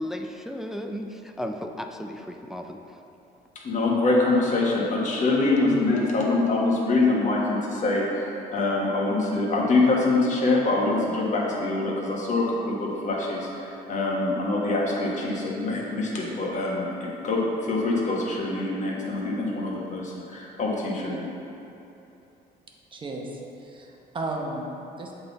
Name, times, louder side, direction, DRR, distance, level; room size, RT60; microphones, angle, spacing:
voice 1, 0.0-3.0, equal, ahead, 4 dB, 0.3 m, -35 dB
voice 2, 3.6-21.3, left 2 dB, 45° left, -3 dB, 1.3 m, -24 dB
voice 3, 22.9-25.1, right 2 dB, 30° right, 0 dB, 0.9 m, -34 dB
7.7 x 4.0 x 4.0 m, 2.9 s
cardioid pair, 110°, 17 cm